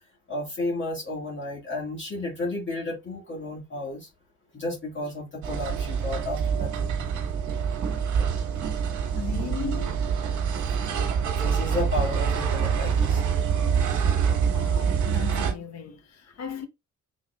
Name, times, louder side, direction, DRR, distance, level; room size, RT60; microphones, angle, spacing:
voice 1, 0.3-4.1 4.5-7.0 11.2-13.2, left 2 dB, 40° left, 1.9 m, -32 dB
sound 1, 5.4-15.5, right 7 dB, 70° right, 1.5 m, -25 dB
voice 2, 9.1-10.1 14.4-16.7, left 6 dB, 60° left, 1.2 m, -36 dB
4.5 x 4.2 x 2.4 m
cardioid pair, 90°, 30 cm